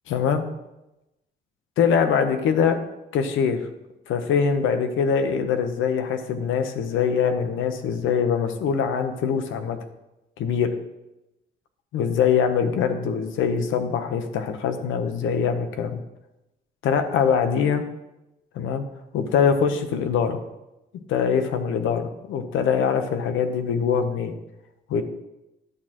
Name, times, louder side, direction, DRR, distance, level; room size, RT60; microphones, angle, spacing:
voice 1, 0.1-0.4 1.8-2.8 3.1-3.6 4.1-9.8 10.4-10.7 11.9-16.0 16.8-17.8 18.5-18.8 19.1-20.4 21.1-24.3 24.9-25.0, left 7 dB, 85° left, 8 dB, 0.9 m, -23 dB
11.0 x 6.3 x 3.0 m, 0.94 s
cardioid pair, 90°, 20 cm